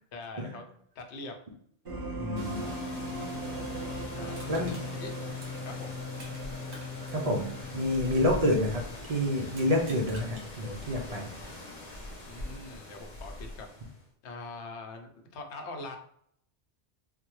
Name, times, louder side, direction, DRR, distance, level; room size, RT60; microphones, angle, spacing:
voice 1, 0.1-0.6 1.0-1.3 4.1-5.9 12.3-13.7 14.2-16.0, left 3 dB, 90° left, 4 dB, 0.9 m, -43 dB
sound 1, 1.8-8.9, left 1 dB, 60° right, 1.6 m, -38 dB
voice 2, 2.2-2.6 4.5-4.7 7.1-11.3, left 1 dB, 45° right, 1 dB, 0.6 m, -28 dB
sound 2, 2.4-14.0, left 1 dB, 45° left, 0.9 m, -43 dB
Crushing, 4.3-6.4 6.7-8.9 9.5-10.5 10.9-11.0, right 1 dB, 75° right, 1.2 m, -51 dB
3.5 x 2.2 x 3.0 m, 0.67 s
omnidirectional pair, 1.1 m